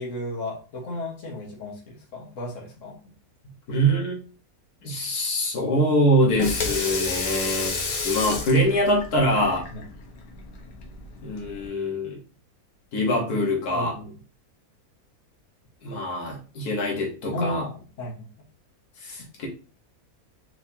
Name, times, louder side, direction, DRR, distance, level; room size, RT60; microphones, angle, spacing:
voice 1, 0.0-3.0 9.7-9.8 13.7-14.1 17.3-18.3, left 1 dB, 55° left, -2 dB, 1.7 m, -33 dB
voice 2, 3.7-4.2 4.8-9.7 11.2-12.2 12.9-14.0 15.8-17.6 19.0-19.5, equal, 90° left, -2 dB, 1.8 m, -24 dB
Water tap faucet / Sink (filling or washing), 6.2-11.7, left 4 dB, 75° left, 1.4 m, -31 dB
4.5 x 3.8 x 2.7 m, 0.36 s
omnidirectional pair, 1.6 m